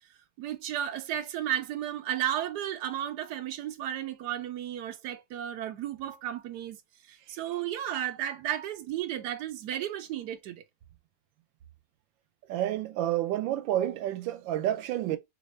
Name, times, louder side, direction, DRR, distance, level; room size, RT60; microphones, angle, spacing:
voice 1, 0.4-6.8 7.1-10.6, right 11 dB, 70° right, 1.0 m, -33 dB
voice 2, 12.5-15.2, right 12 dB, 85° right, 1.3 m, -29 dB
3.4 x 3.1 x 3.1 m
omnidirectional pair, 2.0 m